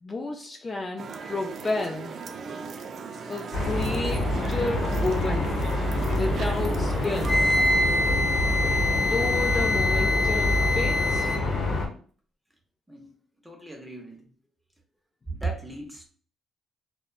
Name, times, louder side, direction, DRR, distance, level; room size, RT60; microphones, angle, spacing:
voice 1, 0.0-2.2 3.3-5.7 6.1-7.5 9.0-11.3, left 3 dB, 30° left, 1 dB, 0.3 m, -31 dB
sound 1, 1.0-7.7, right 5 dB, 55° right, 0.3 m, -38 dB
sound 2, 3.5-11.9, left 1 dB, 65° left, 0.8 m, -26 dB
Wind instrument woodwind instrument, 7.2-11.4, left 2 dB, 30° right, 1.0 m, -25 dB
voice 2, 13.4-14.2 15.3-16.1, right 3 dB, 5° right, 2 dB, 0.6 m, -35 dB
2.8 x 2.1 x 2.3 m, 0.43 s
cardioid pair, 90°, 0 cm